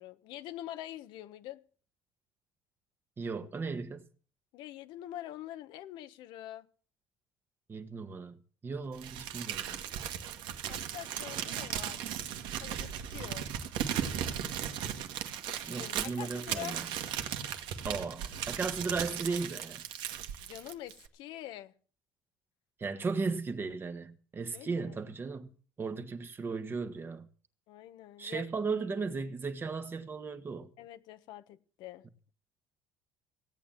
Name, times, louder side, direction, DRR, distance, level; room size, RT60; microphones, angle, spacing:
voice 1, 0.0-1.6 4.5-6.7 10.7-12.0 12.6-13.5 15.5-16.8 20.4-21.7 24.5-25.0 27.7-28.4 30.8-32.0, left 13 dB, 75° left, 1.2 m, -45 dB
voice 2, 3.2-4.1 7.7-8.4 8.6-9.8 15.6-16.9 17.8-19.8 22.8-25.5 25.8-27.3 28.2-30.7, right 4 dB, 25° right, 1.5 m, -36 dB
Crumpling crinkling, 9.0-21.1, right 9 dB, 75° right, 1.9 m, -37 dB
17.0 x 8.9 x 7.4 m
cardioid pair, 115°, 8 cm